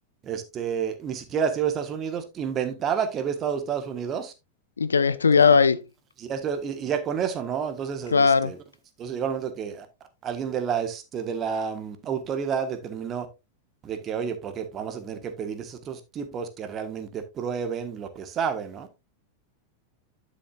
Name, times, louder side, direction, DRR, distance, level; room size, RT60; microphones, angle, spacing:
voice 1, 0.2-4.3 6.2-8.6 9.0-9.9 10.2-13.3 13.8-18.9, right 7 dB, 30° right, 1.4 m, -30 dB
voice 2, 4.8-5.8 8.1-8.5, left 5 dB, 75° left, 0.5 m, -18 dB
11.0 x 6.5 x 2.5 m
figure-of-eight pair, 90°, 0 cm